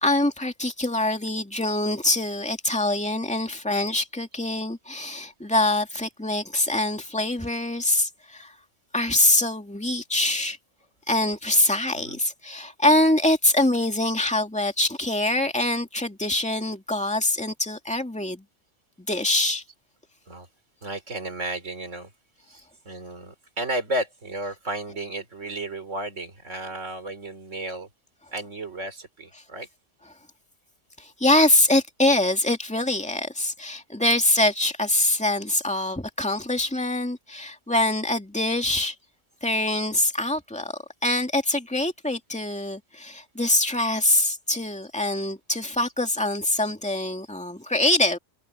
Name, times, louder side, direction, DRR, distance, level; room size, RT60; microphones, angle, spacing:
voice 1, 0.0-8.5 8.9-10.6 11.1-18.4 19.1-19.6 31.0-38.9 39.4-40.7 41.0-48.2, left 1 dB, 5° left, 2.4 m, -24 dB
voice 2, 20.8-22.1 22.5-27.9 28.3-29.7, right 1 dB, 90° right, 4.1 m, -33 dB
omnidirectional pair, 1.2 m